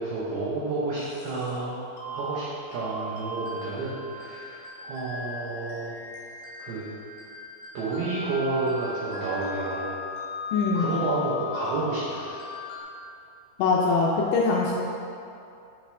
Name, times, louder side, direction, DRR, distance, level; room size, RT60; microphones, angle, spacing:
voice 1, 0.0-2.5 2.7-6.0 6.6-6.8 7.7-10.0 10.7-12.5, right 3 dB, 85° right, -8 dB, 2.2 m, -30 dB
sound 1, 1.0-1.5 2.0-12.8, left 2 dB, 60° left, 2.5 m, -38 dB
voice 2, 10.5-11.0 13.6-14.7, left 4 dB, 80° left, -3 dB, 2.8 m, -23 dB
9.3 x 5.8 x 3.4 m, 2.6 s
omnidirectional pair, 5.9 m